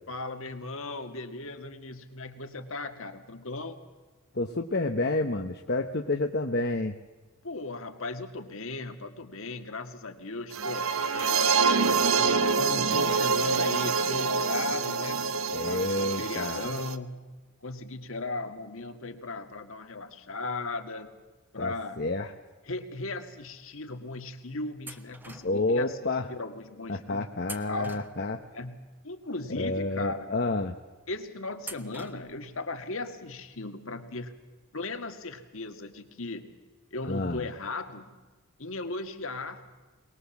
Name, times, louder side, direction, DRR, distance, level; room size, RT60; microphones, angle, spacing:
voice 1, 0.1-3.8 7.4-11.6 12.2-15.3 15.6-17.3 17.6-21.1 21.5-22.0 22.7-26.0 26.3-27.3 27.7-28.0 28.5-28.8 29.0-30.3 31.1-34.3 34.7-36.5 36.9-38.1 38.6-39.7, left 2 dB, 65° left, 7 dB, 2.1 m, -37 dB
voice 2, 4.3-6.9 15.5-16.7 21.6-22.3 25.4-26.3 26.9-28.4 29.5-30.8 37.1-37.5, left 2 dB, 50° left, 4 dB, 1.1 m, -29 dB
sound 1, 10.5-17.0, right 5 dB, 65° right, 1.0 m, -26 dB
sound 2, 24.9-25.8 27.4-28.5 31.6-32.5, right 2 dB, 10° right, 1.1 m, -45 dB
22.5 x 20.5 x 7.3 m, 1.3 s
head